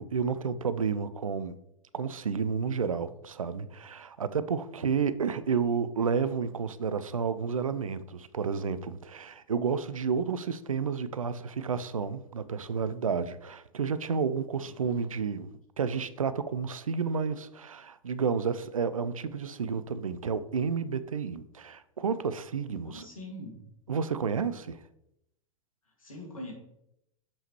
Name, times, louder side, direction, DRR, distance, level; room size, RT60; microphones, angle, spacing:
voice 1, 0.0-1.6 1.9-23.0 23.9-24.8, right 6 dB, 75° right, 14 dB, 0.5 m, -31 dB
voice 2, 14.6-15.1 22.8-23.7 25.9-26.5, left 1 dB, 75° left, -1 dB, 2.0 m, -44 dB
7.0 x 5.5 x 3.0 m, 0.82 s
figure-of-eight pair, 100°, 18 cm